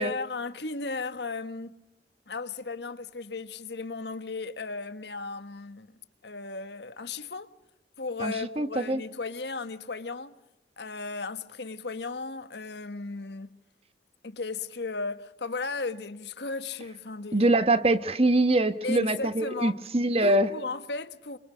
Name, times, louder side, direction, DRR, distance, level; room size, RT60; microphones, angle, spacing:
voice 1, 0.0-1.7 2.3-5.9 6.2-7.5 8.0-10.3 10.8-13.6 14.2-17.5 18.8-19.8 20.2-21.4, left 3 dB, 75° left, 1.4 m, -35 dB
voice 2, 8.2-9.0 17.3-20.5, right 2 dB, 35° right, 1.2 m, -24 dB
25.0 x 25.0 x 5.1 m
head